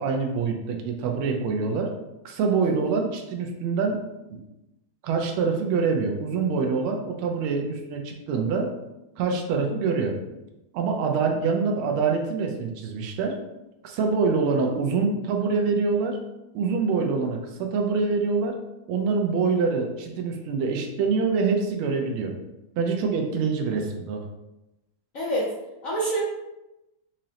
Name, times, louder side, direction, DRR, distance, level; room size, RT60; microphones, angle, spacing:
voice 1, 0.0-1.9 2.2-4.0 4.3-4.4 5.0-8.7 9.2-10.2 10.7-13.4 13.8-16.2 16.5-18.6 18.9-22.3 22.8-24.2, right 4 dB, 85° right, 2 dB, 1.5 m, -25 dB
voice 2, 25.1-25.5 25.8-26.2, right 1 dB, 80° left, -5 dB, 0.7 m, -28 dB
4.9 x 2.0 x 2.8 m, 0.95 s
omnidirectional pair, 2.3 m